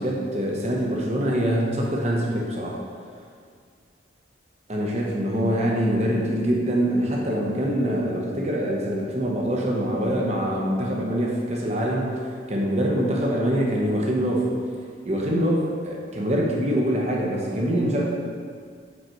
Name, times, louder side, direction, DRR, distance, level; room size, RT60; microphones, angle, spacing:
voice 1, 0.0-2.8 4.7-12.2 12.5-14.5 15.0-18.1, equal, 35° right, -2 dB, 0.9 m, -24 dB
5.3 x 5.0 x 4.5 m, 2.1 s
head